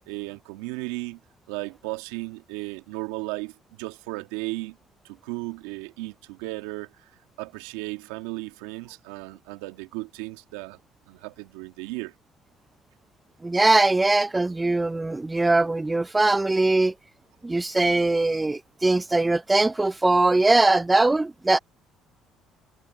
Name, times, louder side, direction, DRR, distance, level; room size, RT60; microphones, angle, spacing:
voice 1, 0.1-1.2 1.5-4.8 5.0-10.8 11.1-12.1, right 22 dB, 85° right, 1.5 m, -35 dB
voice 2, 13.4-16.9 17.4-21.6, right 2 dB, 15° right, 0.4 m, -21 dB
supercardioid pair, 70°, 0 cm